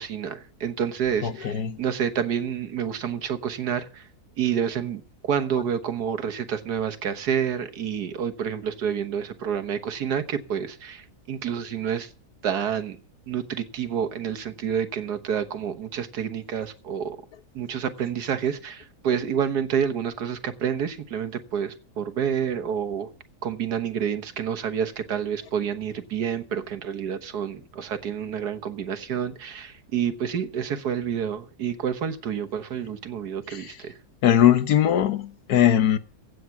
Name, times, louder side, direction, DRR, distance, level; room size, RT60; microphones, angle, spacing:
voice 1, 0.0-4.1 4.4-12.1 12.4-13.0 13.3-17.2 17.5-23.1 23.4-34.0, right 8 dB, 90° right, 1.8 m, -28 dB
voice 2, 1.2-1.8 34.2-36.0, left 10 dB, 75° left, 1.4 m, -20 dB
16.0 x 8.5 x 5.9 m
omnidirectional pair, 1.7 m